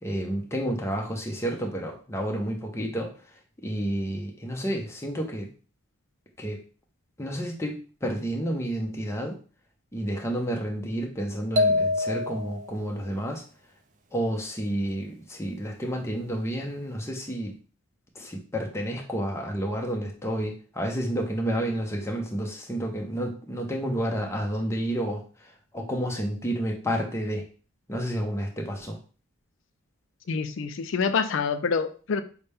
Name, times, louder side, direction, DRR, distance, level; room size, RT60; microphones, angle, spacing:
voice 1, 0.0-5.5 6.4-6.6 7.2-9.4 9.9-13.4 14.1-17.6 18.1-27.5 27.9-29.0, equal, 10° left, 1 dB, 0.6 m, -30 dB
sound 1, 11.6-12.7, left 2 dB, 35° right, 0.4 m, -24 dB
voice 2, 30.3-32.2, left 5 dB, 60° left, 11 dB, 0.4 m, -26 dB
5.8 x 2.2 x 3.4 m, 0.39 s
head